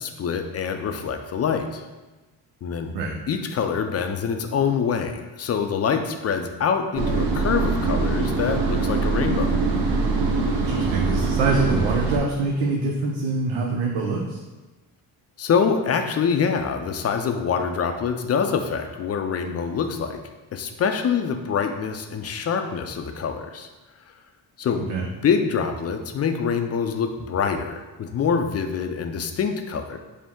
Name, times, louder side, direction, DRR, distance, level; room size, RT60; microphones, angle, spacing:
voice 1, 0.0-1.8 2.6-2.9 3.3-9.6 15.4-20.2 20.5-23.7 24.6-24.8 25.2-30.0, left 6 dB, 35° left, 6 dB, 0.4 m, -25 dB
sound 1, 7.0-12.2, right 3 dB, 55° right, 0.8 m, -23 dB
voice 2, 10.6-14.4 24.9-25.1, right 3 dB, 90° right, -2 dB, 0.7 m, -24 dB
5.2 x 2.1 x 3.5 m, 1.2 s
cardioid pair, 85°, 42 cm